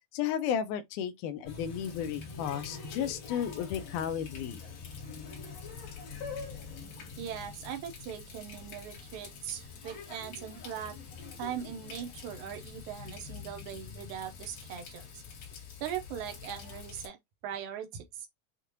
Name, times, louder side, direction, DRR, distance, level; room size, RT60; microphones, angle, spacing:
voice 1, 0.1-4.6, left 9 dB, 80° left, 1.9 m, -33 dB
Water tap faucet, 1.5-17.1, left 5 dB, 60° left, 2.3 m, -45 dB
voice 2, 7.2-11.0 11.4-15.2 15.8-17.2 17.4-18.3, right 9 dB, 75° right, 2.0 m, -40 dB
6.6 x 2.5 x 2.8 m
omnidirectional pair, 3.9 m